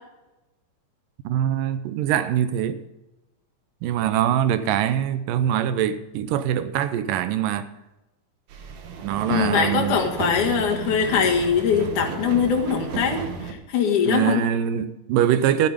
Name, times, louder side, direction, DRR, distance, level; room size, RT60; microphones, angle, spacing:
voice 1, 1.2-2.8 3.8-7.7 9.0-10.0 14.1-15.7, right 10 dB, 85° right, 2.4 m, -23 dB
sound 1, 8.5-13.5, right 5 dB, 65° right, 2.4 m, -33 dB
voice 2, 9.3-14.4, left 7 dB, 70° left, 3.0 m, -22 dB
12.0 x 10.5 x 5.1 m
omnidirectional pair, 3.8 m